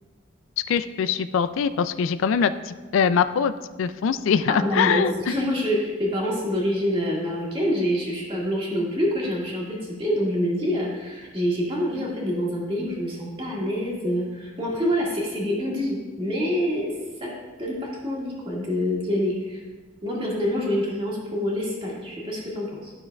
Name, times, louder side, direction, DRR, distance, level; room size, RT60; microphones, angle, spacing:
voice 1, 0.7-3.5 3.8-5.3, left 7 dB, 80° left, 13 dB, 0.3 m, -23 dB
voice 2, 4.5-16.9 17.2-17.3 17.6-19.6 20.0-22.9, equal, 25° right, -4 dB, 1.8 m, -26 dB
12.0 x 6.1 x 2.3 m, 1.3 s
head